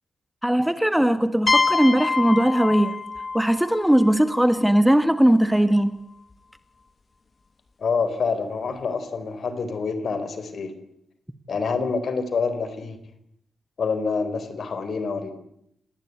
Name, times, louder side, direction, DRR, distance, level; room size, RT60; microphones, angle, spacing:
voice 1, 0.4-2.9 3.3-5.9, right 1 dB, 5° right, 11 dB, 1.5 m, -19 dB
sound 1, 1.5-5.1, left 4 dB, 35° left, 1.8 m, -26 dB
voice 2, 7.8-10.7 11.5-13.0 13.8-15.3, left 4 dB, 60° left, 12 dB, 4.1 m, -27 dB
28.0 x 19.5 x 9.4 m, 0.77 s
cardioid pair, 100°, 0 cm